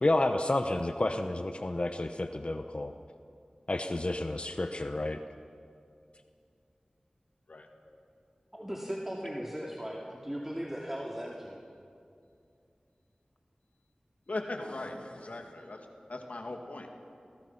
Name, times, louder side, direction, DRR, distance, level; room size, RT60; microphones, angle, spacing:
voice 1, 0.0-2.9 3.7-5.2, left 2 dB, 50° left, 7 dB, 0.9 m, -30 dB
voice 2, 8.5-11.6, equal, 10° right, -2 dB, 2.5 m, -37 dB
voice 3, 14.3-16.9, left 2 dB, 75° left, 3 dB, 2.4 m, -39 dB
28.5 x 20.5 x 5.8 m, 2.5 s
wide cardioid pair, 55°, 3 cm